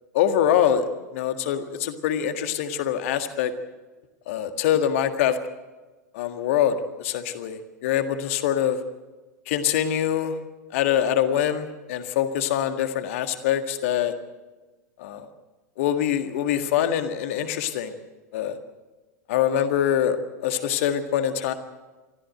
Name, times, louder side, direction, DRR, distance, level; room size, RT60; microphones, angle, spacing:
voice 1, 0.1-0.8 1.1-3.5 4.3-5.4 6.1-8.8 9.5-10.3 10.7-14.1 15.0-15.3 15.8-17.9 18.3-18.5 19.3-20.2 20.4-21.5, left 10 dB, 50° left, 8 dB, 1.7 m, -24 dB
24.0 x 14.5 x 7.8 m, 1.2 s
figure-of-eight pair, 90°, 9 cm